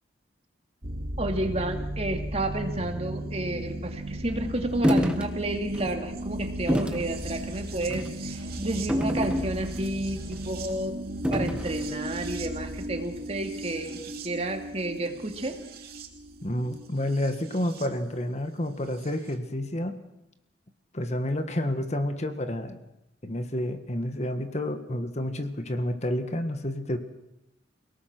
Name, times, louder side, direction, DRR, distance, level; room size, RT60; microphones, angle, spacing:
sound 1, 0.8-17.9 19.0-19.1, right 1 dB, 55° right, 2.6 m, -36 dB
voice 1, 1.2-8.3 8.6-11.0 11.3-14.0 14.2-15.6, right 1 dB, 35° right, 5 dB, 2.4 m, -31 dB
sound 2, 4.8-5.3 5.7-5.9 6.7-7.1 7.8-8.1 8.9-9.8 11.2-11.8, equal, 5° right, 1.4 m, -26 dB
voice 2, 16.4-20.0 20.9-22.8 23.2-27.0, left 1 dB, 40° left, 8 dB, 1.7 m, -29 dB
29.5 x 18.5 x 6.1 m, 0.85 s
head